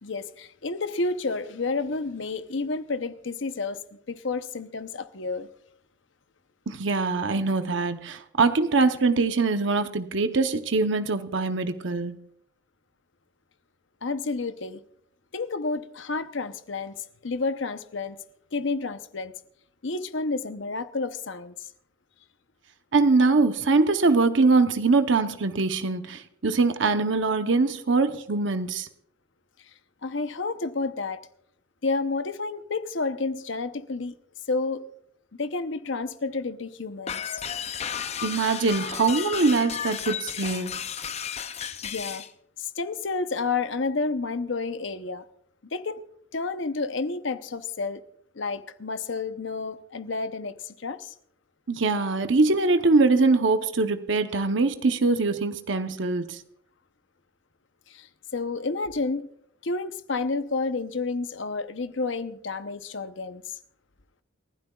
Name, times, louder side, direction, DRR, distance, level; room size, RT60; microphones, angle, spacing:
voice 1, 0.0-5.5 14.0-14.8 15.3-17.0 17.2-18.2 18.5-19.3 19.8-21.5 30.0-31.2 31.8-34.1 34.5-34.8 35.4-37.4 41.8-42.2 42.6-45.2 45.7-46.0 46.3-48.0 48.3-51.1 57.9-58.1 58.3-59.3 59.6-63.4, left 3 dB, 65° left, 0.8 m, -30 dB
voice 2, 6.7-12.2 22.9-28.9 38.2-40.8 51.7-56.4, right 3 dB, 65° right, 0.8 m, -23 dB
sound 1, 37.1-42.3, left 8 dB, 30° left, 0.5 m, -33 dB
29.0 x 12.0 x 2.4 m
head